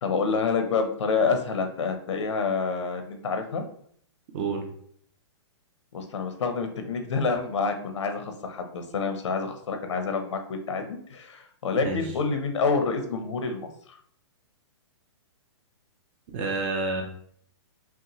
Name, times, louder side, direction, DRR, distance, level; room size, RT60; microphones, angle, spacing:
voice 1, 0.0-3.6 5.9-13.6, left 4 dB, 80° left, 6 dB, 0.9 m, -28 dB
voice 2, 16.3-17.0, right 3 dB, 25° right, 3 dB, 0.6 m, -28 dB
5.7 x 2.2 x 3.0 m, 0.62 s
hypercardioid pair, 170°, 15 cm